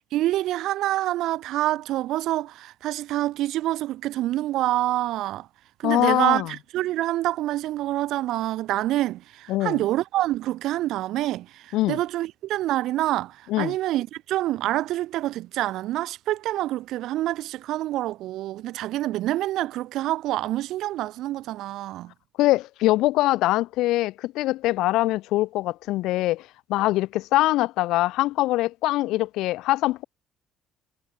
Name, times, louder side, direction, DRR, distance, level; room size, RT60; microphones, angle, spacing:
voice 1, 0.0-5.5 5.8-22.1, right 15 dB, 75° right, 1.2 m, -27 dB
voice 2, 5.8-6.5 9.5-9.8 11.7-12.0 13.5-13.7 22.4-30.0, left 17 dB, 90° left, 0.3 m, -23 dB
cardioid pair, 125°, 0 cm